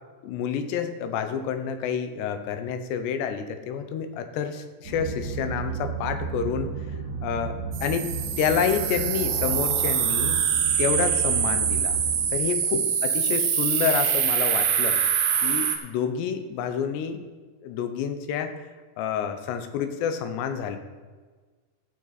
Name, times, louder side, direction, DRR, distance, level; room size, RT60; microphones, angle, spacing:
voice 1, 0.2-6.7 7.2-10.4 10.8-12.0 12.3-15.0 15.4-17.2 17.6-18.6 19.0-20.8, left 7 dB, 90° left, 8 dB, 3.0 m, -28 dB
sound 1, 4.8-12.3, right 5 dB, 50° right, 3.2 m, -33 dB
sound 2, 7.7-15.8, right 8 dB, 70° right, 2.3 m, -24 dB
12.5 x 9.1 x 4.0 m, 1.4 s
omnidirectional pair, 4.8 m